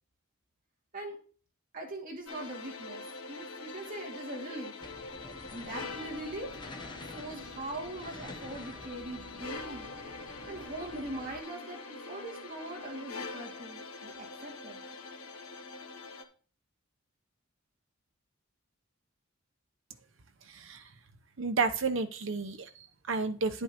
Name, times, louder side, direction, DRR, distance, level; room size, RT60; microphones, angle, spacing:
voice 1, 1.7-3.0 3.3-4.7 5.5-6.5 7.1-9.9 10.5-14.8, right 2 dB, 40° right, 2.3 m, -41 dB
sound 1, 2.3-16.2, left 3 dB, 90° left, 1.3 m, -44 dB
sound 2, 4.8-11.4, left 1 dB, 20° left, 0.8 m, -49 dB
voice 2, 20.5-20.9 21.4-23.6, right 4 dB, 60° right, 0.8 m, -32 dB
10.5 x 8.0 x 3.0 m
head